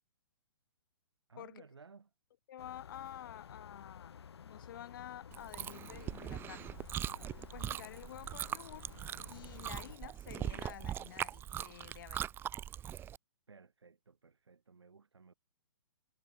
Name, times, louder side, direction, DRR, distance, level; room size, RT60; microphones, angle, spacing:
voice 1, 1.3-2.1 13.5-15.3, right 5 dB, 85° right, 3.7 m, -58 dB
voice 2, 2.5-4.1 4.4-6.7 7.4-8.9 9.3-12.3, left 11 dB, 55° left, 1.5 m, -50 dB
sound 1, 2.6-10.0, left 7 dB, 75° left, 0.7 m, -53 dB
Chewing mastication, 5.3-13.2, right 10 dB, 15° right, 0.7 m, -41 dB
hypercardioid pair, 130°, 14 cm